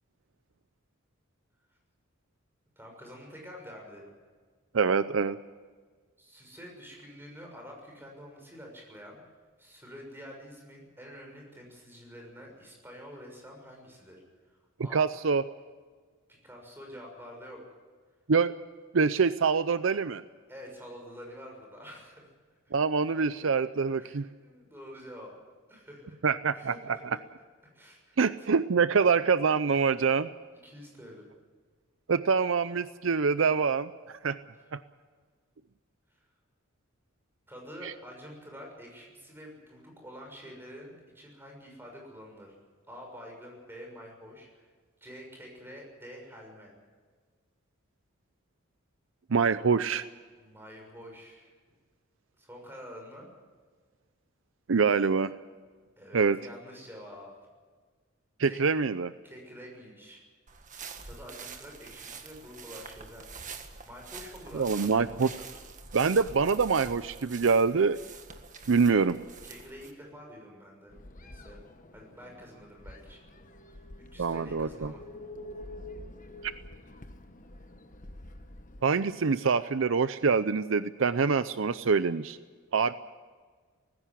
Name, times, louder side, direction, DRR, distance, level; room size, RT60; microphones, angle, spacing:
voice 1, 2.8-4.1 6.2-9.2 9.6-14.1 14.5-15.1 16.3-17.6 20.5-22.3 22.6-22.7 23.0-23.1 23.4-23.5 24.0-25.4 25.7-26.2 26.5-27.2 27.7-28.5 30.6-31.3 36.1-36.2 37.5-42.5 42.9-44.7 45.0-46.7 50.4-51.5 52.4-53.3 56.0-57.3 58.4-58.6 59.2-60.2 61.0-63.3 63.8-65.6 68.8-69.0 69.4-71.6 71.9-73.3 73.7-75.0, equal, 10° right, 1 dB, 6.4 m, -48 dB
voice 2, 4.7-5.4 14.9-15.4 18.3-18.5 18.9-20.2 22.7-24.3 26.2-26.7 28.2-30.3 32.1-34.4 34.7-34.8 37.8-37.9 49.3-50.0 54.7-55.3 56.1-56.4 58.4-59.1 64.5-65.3 65.9-68.0 68.7-69.2 74.2-74.9 76.4-76.5 78.8-82.4 82.7-82.9, right 5 dB, 65° right, 14 dB, 0.6 m, -25 dB
sound 1, 60.5-69.9, right 5 dB, 40° right, 1.7 m, -46 dB
sound 2, 70.9-78.8, left 1 dB, 40° left, 1.2 m, -47 dB
19.0 x 16.0 x 10.0 m, 1.5 s
head